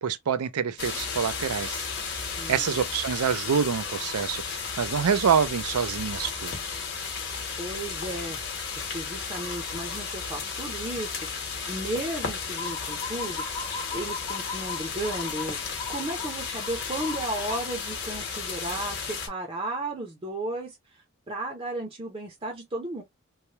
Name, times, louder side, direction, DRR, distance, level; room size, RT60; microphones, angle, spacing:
voice 1, 0.0-1.8 2.1-6.5, right 7 dB, 90° right, 0.5 m, -27 dB
sound 1, 0.8-19.3, left 5 dB, 50° left, 1.0 m, -33 dB
voice 2, 2.3-2.9 7.6-8.4 8.9-13.4 13.9-15.6 15.9-23.0, right 1 dB, 25° right, 0.6 m, -34 dB
3.2 x 2.2 x 2.7 m
head